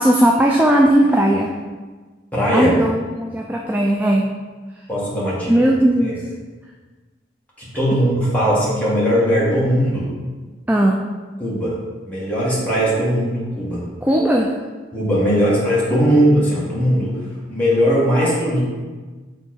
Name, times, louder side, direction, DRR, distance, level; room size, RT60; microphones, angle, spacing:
voice 1, 0.0-1.5 2.5-4.3 5.5-6.1 10.7-11.0 14.0-14.5, right 1 dB, 10° right, -1 dB, 0.3 m, -17 dB
voice 2, 2.3-2.7 4.9-5.6 6.0-6.2 7.6-10.1 11.4-11.8 12.0-13.8 14.9-17.2 17.5-18.6, equal, 10° left, -8 dB, 1.7 m, -19 dB
7.1 x 3.4 x 4.4 m, 1.4 s
head